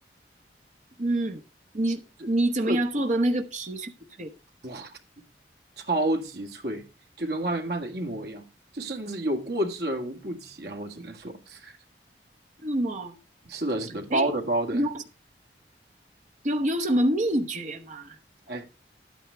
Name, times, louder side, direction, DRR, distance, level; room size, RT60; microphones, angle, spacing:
voice 1, 1.0-1.4 1.7-2.0 2.3-3.9 4.2-4.3 12.6-13.2 14.1-14.3 14.7-15.0 16.4-18.2, right 1 dB, 45° right, 0.9 m, -26 dB
voice 2, 5.8-6.8 7.2-8.4 8.7-11.8 13.4-14.8 18.5-18.6, right 1 dB, 60° right, 1.8 m, -30 dB
12.0 x 9.1 x 3.3 m
head